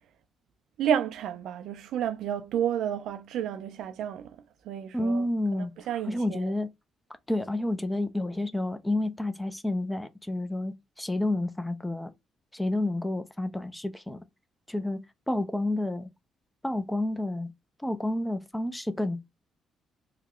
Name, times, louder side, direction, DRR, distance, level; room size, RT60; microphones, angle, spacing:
voice 1, 0.8-4.4 4.6-5.3 5.5-6.5, right 9 dB, 80° right, 0.5 m, -31 dB
voice 2, 4.9-6.7 7.3-12.1 12.5-14.2 14.7-15.0 15.3-16.1 16.6-17.5 17.8-19.2, left 1 dB, 5° left, 0.5 m, -30 dB
3.2 x 2.2 x 3.6 m
cardioid pair, 90°, 0 cm